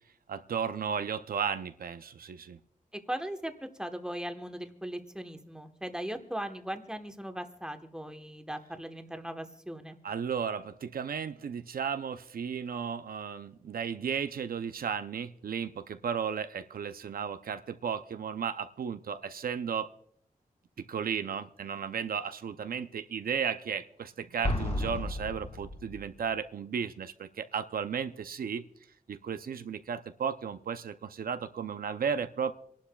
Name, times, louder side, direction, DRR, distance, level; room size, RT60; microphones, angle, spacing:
voice 1, 0.3-2.6 10.0-19.9 20.8-28.6 29.1-32.5, right 7 dB, 75° right, 10 dB, 0.5 m, -34 dB
voice 2, 3.1-10.0, right 1 dB, 5° right, 6 dB, 1.1 m, -38 dB
Explosion, 24.4-26.2, left 1 dB, 45° left, 3.4 m, -33 dB
27.0 x 11.5 x 2.3 m, 0.67 s
wide cardioid pair, 95°, 15 cm